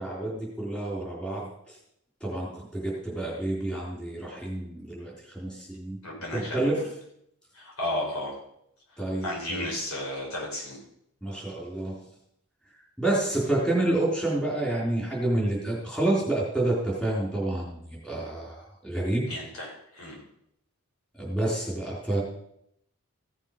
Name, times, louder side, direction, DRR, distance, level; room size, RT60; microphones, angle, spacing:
voice 1, 0.0-1.5 2.2-6.0 6.3-6.8 9.0-9.7 11.2-12.0 13.0-19.3 21.2-22.2, right 1 dB, 5° left, -4 dB, 3.8 m, -29 dB
voice 2, 6.0-6.8 7.5-8.4 9.2-10.8 19.3-20.2, left 1 dB, 70° left, -2 dB, 5.0 m, -33 dB
15.5 x 7.2 x 5.5 m, 0.74 s
head